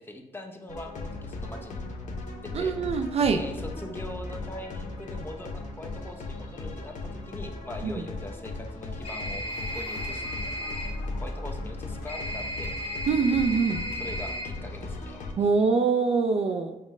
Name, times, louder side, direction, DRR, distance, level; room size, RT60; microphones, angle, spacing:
voice 1, 0.0-1.9 2.4-2.7 3.3-10.3 11.2-12.7 14.0-15.2, left 1 dB, 15° left, 3 dB, 0.7 m, -42 dB
sound 1, 0.7-15.3, left 2 dB, 75° left, 0.6 m, -37 dB
voice 2, 2.5-3.4 7.8-7.9 13.1-13.8 15.4-16.7, right 5 dB, 50° right, 6 dB, 0.4 m, -24 dB
sound 2, 9.0-10.9 12.1-14.4, equal, 45° left, 1.4 m, -35 dB
5.1 x 2.1 x 3.6 m, 1.1 s
cardioid pair, 75°, 13 cm